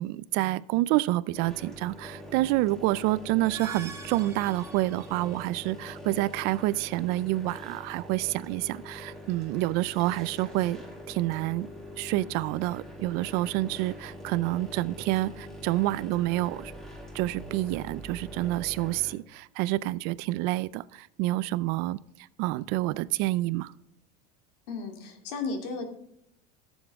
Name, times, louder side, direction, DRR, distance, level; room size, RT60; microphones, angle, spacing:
voice 1, 0.0-11.7 12.0-16.7 17.1-22.0 22.4-23.7, right 17 dB, 55° right, 18 dB, 0.4 m, -28 dB
sound 1, 1.3-19.1, equal, ahead, 1.6 m, -44 dB
sound 2, 3.3-5.6, right 5 dB, 15° right, 1.2 m, -44 dB
voice 2, 24.7-25.9, left 4 dB, 75° left, 5 dB, 2.5 m, -34 dB
15.0 x 7.2 x 3.6 m, 0.77 s
cardioid pair, 160°, 20 cm